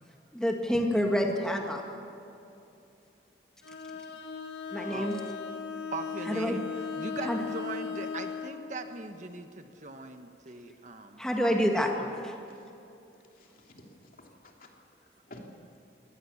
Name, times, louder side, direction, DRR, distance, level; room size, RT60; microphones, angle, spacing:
voice 1, 0.3-1.8 4.7-5.2 6.3-6.6 7.2-7.4 11.2-11.9, equal, 5° left, 1 dB, 1.9 m, -27 dB
Bowed string instrument, 3.6-8.6, left 6 dB, 75° left, 1.6 m, -37 dB
voice 2, 5.9-11.2, right 3 dB, 45° right, 7 dB, 1.2 m, -40 dB
voice 3, 13.2-14.7 15.3-15.5, left 1 dB, 50° left, 1 dB, 3.0 m, -52 dB
24.0 x 18.5 x 7.2 m, 2.8 s
head